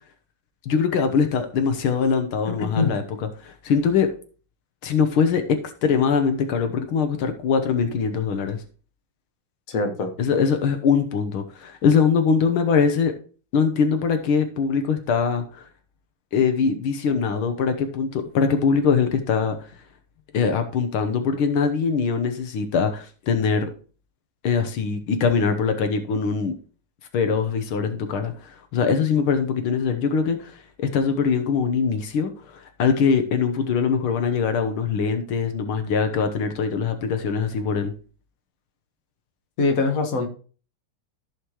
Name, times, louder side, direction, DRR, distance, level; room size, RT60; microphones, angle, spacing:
voice 1, 0.6-4.1 4.8-8.6 10.2-13.1 13.5-15.7 16.3-19.6 20.3-23.7 24.4-26.5 27.1-37.9, left 6 dB, 80° left, 7 dB, 1.8 m, -22 dB
voice 2, 9.7-10.1 39.6-40.3, left 3 dB, 45° left, 4 dB, 1.6 m, -22 dB
14.5 x 5.0 x 3.0 m, 0.38 s
omnidirectional pair, 2.3 m